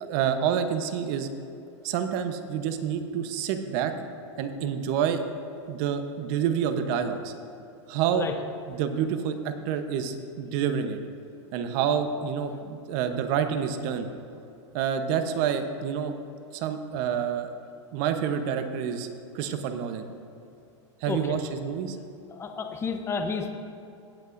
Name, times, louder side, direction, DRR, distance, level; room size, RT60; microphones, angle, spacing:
voice 1, 0.1-1.3 1.8-3.9 4.4-5.2 5.7-7.3 7.9-8.3 8.7-11.0 11.5-14.1 14.7-16.1 16.5-17.5 17.9-19.1 19.3-20.1 21.0-22.0, right 8 dB, 50° right, 8 dB, 1.0 m, -28 dB
voice 2, 21.1-21.4 22.3-23.5, left 5 dB, 15° left, 5 dB, 0.8 m, -31 dB
17.5 x 8.2 x 2.6 m, 2.7 s
supercardioid pair, 130°, 16 cm